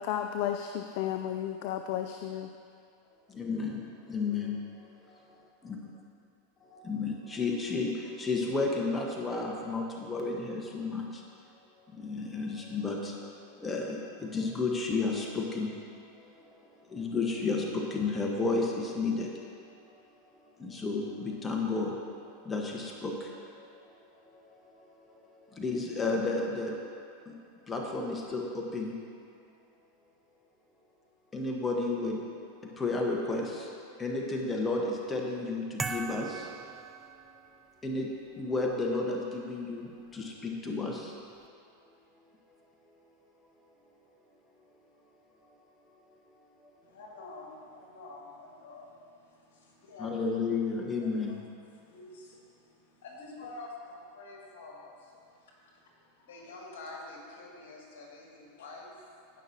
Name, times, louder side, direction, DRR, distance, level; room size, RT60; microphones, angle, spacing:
voice 1, 0.0-2.5, left 10 dB, 55° left, 6 dB, 0.4 m, -33 dB
voice 2, 3.3-5.2 5.6-5.9 6.6-11.2 11.9-16.5 16.8-19.3 20.6-22.1 22.4-24.0 24.3-26.8 27.2-27.4 27.7-28.9 31.3-32.2 32.8-33.7 34.0-36.5 37.8-38.1 38.4-41.2 50.0-51.4, left 3 dB, 20° left, -1 dB, 1.2 m, -32 dB
sound 1, 35.8-37.7, right 4 dB, 15° right, 0.5 m, -39 dB
voice 3, 46.8-50.2 51.0-59.4, left 2 dB, 75° left, -2 dB, 2.2 m, -48 dB
16.5 x 5.9 x 2.8 m, 2.4 s
hypercardioid pair, 110°, 0 cm